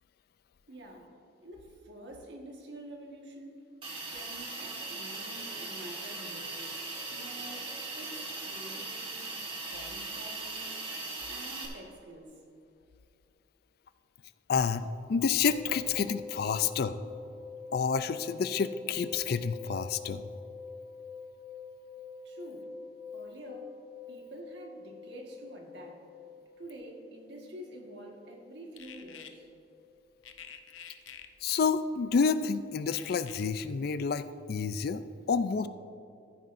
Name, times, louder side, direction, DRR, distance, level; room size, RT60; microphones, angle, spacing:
voice 1, 0.7-1.1 1.4-3.6 3.9-6.6 7.1-9.3 9.7-10.7 11.3-12.4 22.2-22.7 23.1-23.8 24.1-26.1 26.6-29.5, right 1 dB, 60° right, 1 dB, 1.5 m, -48 dB
Hiss, 3.8-11.7, right 3 dB, 30° right, 1.5 m, -39 dB
voice 2, 14.5-17.0 17.7-20.2 31.4-35.7, left 5 dB, 50° left, 12 dB, 0.3 m, -29 dB
sound 1, 15.5-30.5 30.7-30.9, left 4 dB, 5° right, 0.6 m, -46 dB
sound 2, 28.8-29.3 30.2-31.3 32.9-33.4, left 8 dB, 85° left, 0.7 m, -47 dB
14.5 x 9.5 x 2.6 m, 2.6 s
head